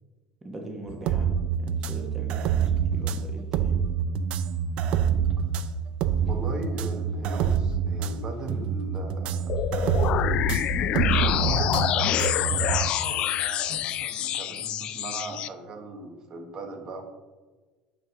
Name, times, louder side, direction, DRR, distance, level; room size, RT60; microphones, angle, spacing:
voice 1, 0.4-3.8, right 1 dB, 15° right, 2 dB, 1.0 m, -40 dB
sound 1, 0.9-12.9, right 7 dB, 60° right, 0.5 m, -27 dB
sound 2, 4.7-5.7 6.1-7.2 7.6-7.8 8.4-9.2 9.5-10.0 10.7-10.9 11.3-12.2 12.7-13.2 13.6-14.3, equal, 20° left, 1.5 m, -46 dB
voice 2, 6.2-9.6 10.7-17.1, right 2 dB, 40° right, 4 dB, 1.1 m, -38 dB
sound 3, 9.5-15.5, left 11 dB, 50° left, 0.3 m, -26 dB
9.0 x 4.6 x 3.8 m, 1.3 s
cardioid pair, 125°, 2 cm